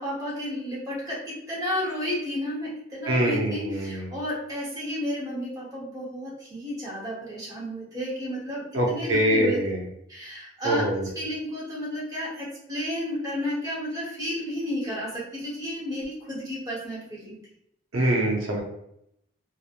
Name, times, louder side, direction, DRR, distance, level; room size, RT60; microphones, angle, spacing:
voice 1, 0.0-9.6 10.1-10.8 11.1-17.4, equal, 20° right, -7 dB, 1.0 m, -32 dB
voice 2, 3.1-4.1 8.7-9.8 10.6-11.1 17.9-18.6, right 1 dB, 90° right, -1 dB, 0.6 m, -24 dB
3.1 x 2.1 x 2.4 m, 0.78 s
head